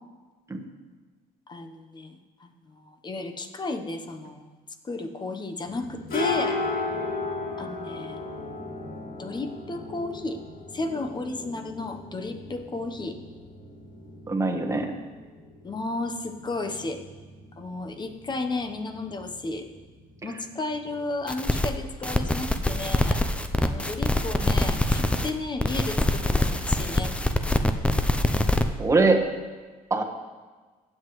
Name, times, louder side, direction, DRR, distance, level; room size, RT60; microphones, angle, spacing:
voice 1, 1.5-4.5 4.8-6.6 7.6-8.2 9.2-10.4 10.7-13.2 15.6-17.0 17.6-19.6 20.2-23.2 23.6-27.1, left 2 dB, 25° left, 6 dB, 0.9 m, -33 dB
sound 1, 5.7-23.1, left 3 dB, 60° left, 2.2 m, -37 dB
voice 2, 14.3-14.9 28.8-29.2 29.9-30.0, right 3 dB, 15° right, 3 dB, 1.2 m, -22 dB
sound 2, 21.3-21.7 22.0-25.3 25.6-28.6, left 1 dB, 5° left, 0.5 m, -24 dB
16.0 x 7.8 x 3.1 m, 1.3 s
cardioid pair, 110°, 17 cm